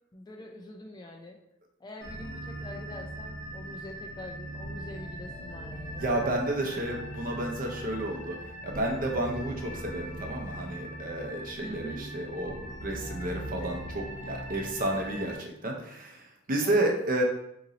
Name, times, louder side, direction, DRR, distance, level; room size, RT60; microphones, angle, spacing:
voice 1, 0.1-1.4 1.8-6.2 11.6-12.0 16.6-17.0, left 1 dB, 20° left, 1 dB, 0.3 m, -44 dB
sound 1, 2.0-15.4, right 1 dB, 80° left, 1.1 m, -40 dB
voice 2, 6.0-8.4 8.6-17.2, right 1 dB, 45° right, 2 dB, 0.6 m, -31 dB
2.9 x 2.6 x 3.9 m, 0.76 s
head